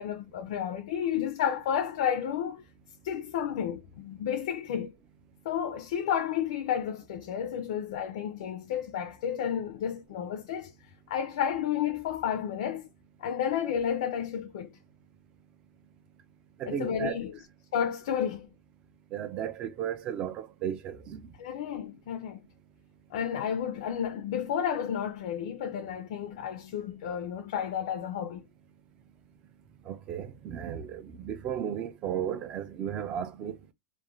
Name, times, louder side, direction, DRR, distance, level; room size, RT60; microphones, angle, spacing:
voice 1, 0.0-2.6 3.0-4.9 5.4-10.7 11.1-12.9 13.2-14.7 16.6-17.4 17.7-18.5 21.4-22.4 23.1-28.4, left 8 dB, 65° left, 0.4 m, -31 dB
voice 2, 16.6-17.2 19.1-21.2 29.9-33.5, right 9 dB, 25° right, 0.3 m, -34 dB
2.4 x 2.1 x 3.0 m
supercardioid pair, 175°, 4 cm